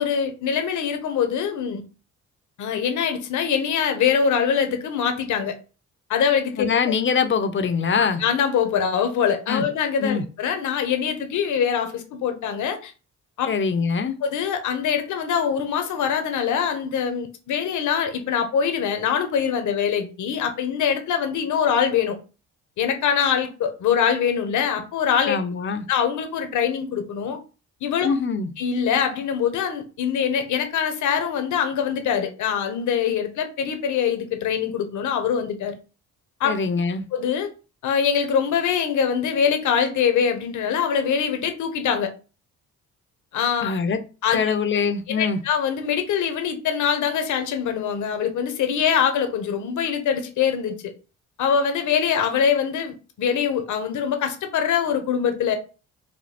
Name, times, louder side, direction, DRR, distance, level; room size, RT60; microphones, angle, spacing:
voice 1, 0.0-1.8 2.6-5.6 6.1-6.9 8.0-12.9 13.4-13.5 14.2-22.2 22.8-25.4 25.9-27.4 27.8-28.1 28.6-35.7 36.4-36.5 37.1-37.5 37.8-42.1 43.3-43.7 44.2-44.5 45.1-50.8 51.4-55.5, left 7 dB, 75° left, 1.0 m, -23 dB
voice 2, 6.6-8.2 9.5-9.7 10.0-10.2 13.5-14.2 25.3-25.9 28.0-28.5 36.4-37.0 43.6-44.0 44.3-45.4, left 5 dB, 40° left, 0.7 m, -23 dB
5.2 x 2.2 x 4.2 m
cardioid pair, 90°, 30 cm